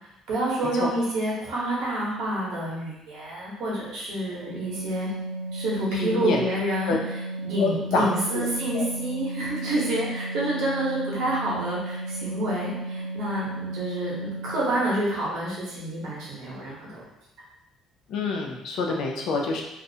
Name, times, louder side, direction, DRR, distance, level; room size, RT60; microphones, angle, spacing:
voice 1, 0.3-5.1 5.5-6.9 7.4-17.0, right 1 dB, 75° right, -5 dB, 0.9 m, -28 dB
Organ, 4.3-14.9, right 2 dB, 20° left, 1.0 m, -34 dB
voice 2, 5.9-6.4 6.9-7.0 7.6-8.1 8.3-8.5 8.7-8.9 18.1-19.6, left 4 dB, 65° left, 1 dB, 0.4 m, -26 dB
2.4 x 2.0 x 2.6 m, 0.91 s
cardioid pair, 125°, 0 cm